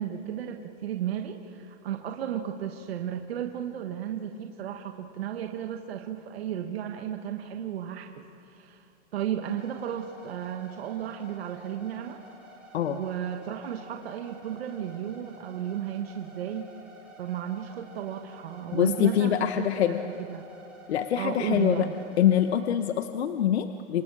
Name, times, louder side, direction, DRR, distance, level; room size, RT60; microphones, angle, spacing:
voice 1, 0.0-8.1 8.4-12.2 12.9-16.7 17.2-20.4 21.2-21.9, right 10 dB, 55° right, 4 dB, 1.3 m, -34 dB
sound 1, 9.4-22.5, right 1 dB, 5° right, 4.7 m, -51 dB
voice 2, 18.7-20.0 20.9-21.9 22.2-24.0, left 10 dB, 60° left, 8 dB, 1.0 m, -24 dB
28.0 x 27.0 x 4.8 m, 2.6 s
hypercardioid pair, 175°, 36 cm